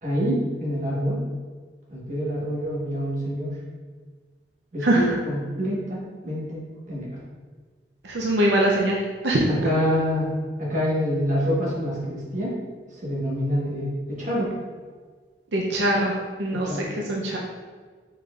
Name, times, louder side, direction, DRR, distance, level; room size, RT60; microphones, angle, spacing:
voice 1, 0.0-1.2 1.9-3.5 4.7-6.6 6.9-7.1 9.5-10.3 10.6-12.5 12.9-14.5 16.5-16.9, equal, 45° right, -5 dB, 1.2 m, -26 dB
voice 2, 8.0-9.0 9.2-9.5 15.5-16.1 16.4-16.7 17.1-17.4, right 1 dB, 85° right, -2 dB, 0.6 m, -22 dB
5.2 x 4.1 x 2.4 m, 1.5 s
head